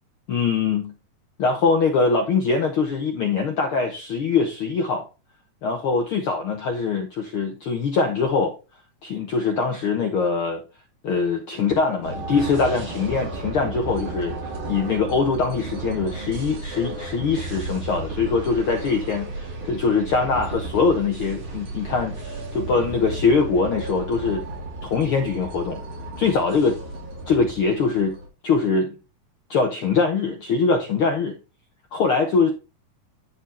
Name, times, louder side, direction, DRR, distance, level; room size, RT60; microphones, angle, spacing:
voice 1, 0.3-0.9 1.4-5.0 5.6-8.5 9.0-10.6 11.0-14.4 14.7-24.4 24.8-25.8 26.2-26.8 27.3-28.1 28.4-29.0 29.5-31.4 31.9-32.5, left 4 dB, 70° left, 1.3 m, -22 dB
sound 1, 12.0-28.3, right 3 dB, 65° right, 4.0 m, -33 dB
11.0 x 4.3 x 4.2 m
omnidirectional pair, 3.7 m